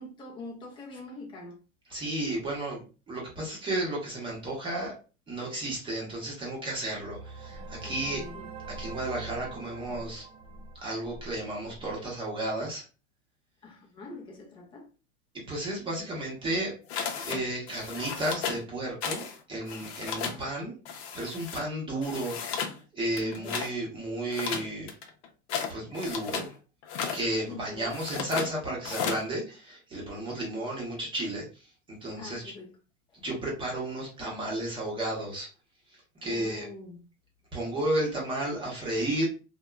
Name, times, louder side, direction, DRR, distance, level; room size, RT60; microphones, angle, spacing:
voice 1, 0.0-1.6 7.8-8.5 13.6-14.9 23.2-23.7 27.4-28.1 32.2-32.8 36.3-37.0, left 3 dB, 15° left, 0.4 m, -44 dB
voice 2, 1.9-4.9 5.3-8.2 8.8-10.2 10.8-12.8 15.3-16.7 17.2-20.7 21.1-22.4 22.9-24.9 25.7-26.5 27.1-31.4 32.0-32.5 33.2-35.5 36.2-36.7 37.5-39.3, right 1 dB, 15° right, 0.7 m, -33 dB
sound 1, 6.6-12.0, right 3 dB, 75° right, 0.8 m, -43 dB
sound 2, 16.9-17.4 17.7-18.6 19.0-19.4 19.6-20.4 20.9-21.6 22.0-22.8 23.1-23.7 24.3-26.5 26.8-27.2 27.9-28.5 28.8-29.2, left 6 dB, 70° left, 0.6 m, -34 dB
2.8 x 2.1 x 2.2 m
supercardioid pair, 155°, 35 cm